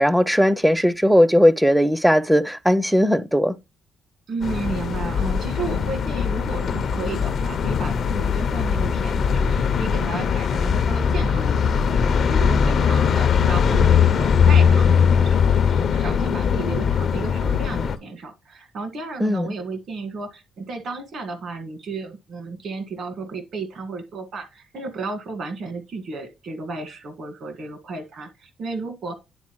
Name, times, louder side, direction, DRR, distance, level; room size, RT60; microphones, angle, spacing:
voice 1, 0.0-3.6 19.2-19.5, equal, 5° right, 0.5 m, -18 dB
voice 2, 4.3-29.1, right 3 dB, 60° right, 1.6 m, -33 dB
sound 1, 4.4-18.0, left 7 dB, 60° left, 0.5 m, -20 dB
9.8 x 3.8 x 3.0 m
cardioid pair, 90°, 0 cm